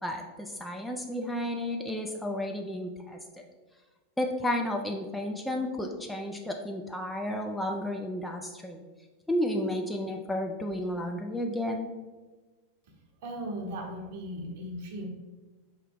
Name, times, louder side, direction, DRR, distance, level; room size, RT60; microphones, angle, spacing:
voice 1, 0.0-3.2 4.2-8.8 9.3-11.9, left 1 dB, 5° left, 2 dB, 0.3 m, -32 dB
voice 2, 13.2-15.1, equal, 50° right, 1 dB, 0.7 m, -37 dB
4.5 x 2.9 x 3.4 m, 1.3 s
figure-of-eight pair, 90°, 0 cm